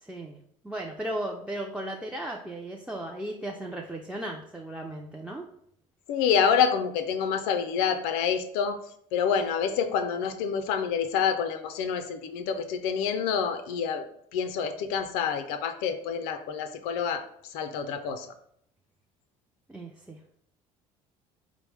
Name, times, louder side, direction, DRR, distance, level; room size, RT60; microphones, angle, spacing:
voice 1, 0.0-0.4 0.6-5.5 19.7-20.2, right 1 dB, 5° right, 0 dB, 0.3 m, -36 dB
voice 2, 6.1-8.8 9.1-14.0 14.3-17.2 17.5-18.3, left 7 dB, 65° left, 8 dB, 0.4 m, -27 dB
4.2 x 2.0 x 3.2 m, 0.69 s
hypercardioid pair, 60°, 18 cm